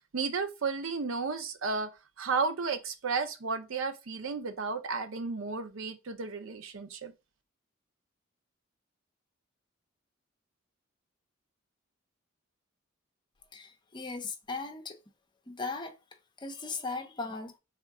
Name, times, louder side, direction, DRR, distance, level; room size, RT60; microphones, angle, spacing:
voice 1, 0.1-1.9 2.2-7.1, right 4 dB, 75° right, 0.6 m, -33 dB
voice 2, 13.5-15.0 15.5-16.0 16.4-17.5, left 3 dB, 20° left, 0.6 m, -37 dB
3.6 x 2.8 x 4.6 m
head